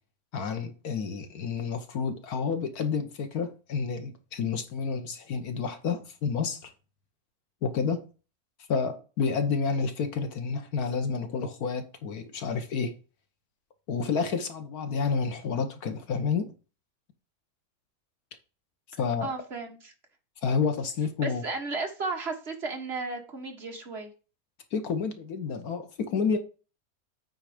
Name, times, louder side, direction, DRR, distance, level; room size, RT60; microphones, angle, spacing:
voice 1, 0.3-6.7 7.6-8.0 8.7-13.0 13.9-16.5 19.0-19.3 20.4-21.4 24.7-26.4, left 5 dB, 85° left, 1.6 m, -29 dB
voice 2, 19.2-19.9 21.2-24.1, right 3 dB, 45° right, 1.7 m, -34 dB
8.9 x 4.0 x 5.0 m
omnidirectional pair, 1.6 m